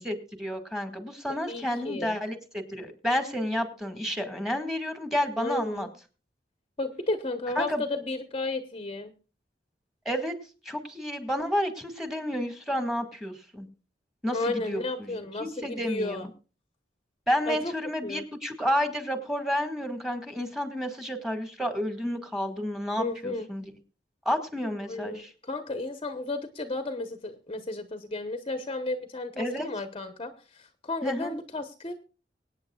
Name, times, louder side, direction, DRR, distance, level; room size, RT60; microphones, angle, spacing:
voice 1, 0.0-5.9 7.6-7.8 10.1-10.3 10.7-13.7 14.2-16.3 17.3-23.6 24.3-25.3 29.4-29.7 31.0-31.3, equal, ahead, 7 dB, 1.9 m, -30 dB
voice 2, 1.5-2.2 5.4-5.9 6.8-9.1 14.3-16.3 17.5-17.7 18.0-18.3 23.0-23.5 24.9-31.9, left 2 dB, 30° left, 8 dB, 1.0 m, -33 dB
24.0 x 9.1 x 2.3 m, 0.34 s
head